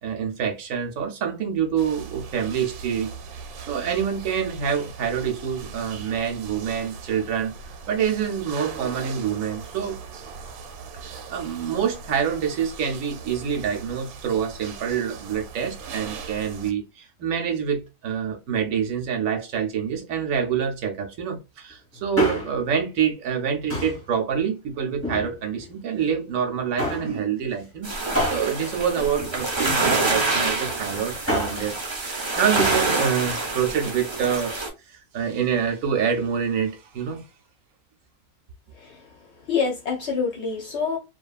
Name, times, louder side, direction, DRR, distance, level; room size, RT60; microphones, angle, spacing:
voice 1, 0.0-3.1 3.7-7.5 7.9-10.0 10.9-31.8 32.0-34.6 34.9-37.2, right 7 dB, 70° right, 0.9 m, -26 dB
sound 1, 1.8-16.7, right 5 dB, 85° right, 1.1 m, -40 dB
Male speech man speaking, 21.9-22.7 23.7-24.1 24.9-25.7 26.8-27.2 28.1-29.8 31.1-31.7 32.6-32.9 33.2-33.3, left 1 dB, 10° left, 0.8 m, -28 dB
sound 2, 27.8-34.7, right 3 dB, 40° right, 0.3 m, -26 dB
voice 2, 38.8-39.1 39.5-41.0, left 5 dB, 60° left, 0.7 m, -26 dB
2.8 x 2.3 x 2.3 m
omnidirectional pair, 1.6 m